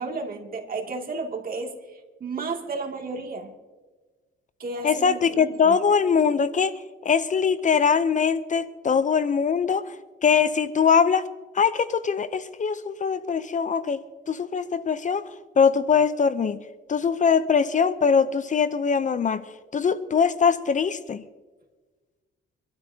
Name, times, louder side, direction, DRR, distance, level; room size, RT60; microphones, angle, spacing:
voice 1, 0.0-1.7 2.2-3.5 4.6-5.8, right 3 dB, 45° right, 2 dB, 2.5 m, -32 dB
voice 2, 4.8-6.8 7.0-9.8 10.2-11.3 11.5-15.2 15.6-16.6 16.9-19.4 19.7-21.2, left 6 dB, 40° left, 14 dB, 0.7 m, -22 dB
24.5 x 12.5 x 2.8 m, 1.3 s
cardioid pair, 90°, 20 cm